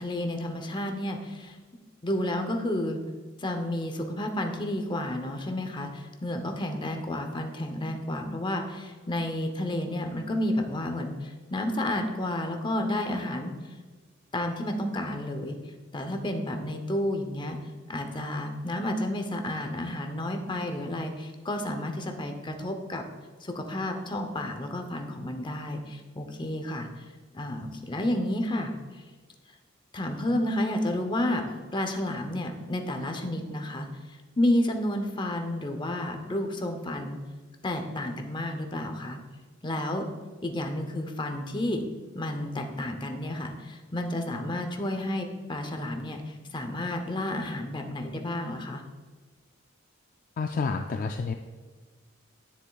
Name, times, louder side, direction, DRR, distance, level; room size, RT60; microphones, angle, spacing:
voice 1, 0.0-1.6 2.0-3.0 3.4-13.5 14.3-15.6 15.9-17.6 17.9-23.0 23.4-27.1 27.3-28.7 29.9-37.2 37.6-39.2 39.6-40.1 40.4-41.8 42.1-48.8, left 1 dB, 25° left, 5 dB, 0.7 m, -31 dB
voice 2, 50.4-51.3, left 4 dB, 45° left, 5 dB, 0.3 m, -29 dB
9.8 x 6.9 x 2.3 m, 1.4 s
head